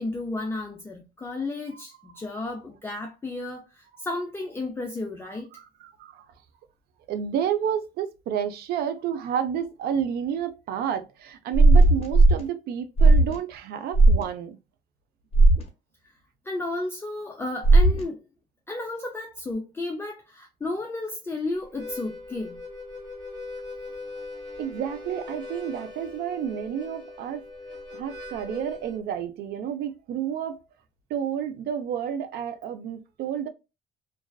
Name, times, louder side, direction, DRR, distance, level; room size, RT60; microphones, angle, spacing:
voice 1, 0.0-5.5 16.5-18.2 18.7-22.6, left 2 dB, 15° left, 0.4 m, -33 dB
voice 2, 5.5-6.3 7.1-14.6 24.6-27.5 27.9-30.6 31.1-33.5, right 9 dB, 70° right, 0.5 m, -30 dB
sound 1, 11.5-12.4 13.0-13.4 13.9-14.2 15.3-15.6 17.6-18.0, right 2 dB, 40° left, 0.9 m, -15 dB
Harmonica, 21.6-29.0, left 3 dB, 25° right, 1.3 m, -40 dB
2.4 x 2.3 x 2.2 m
cardioid pair, 110°, 17 cm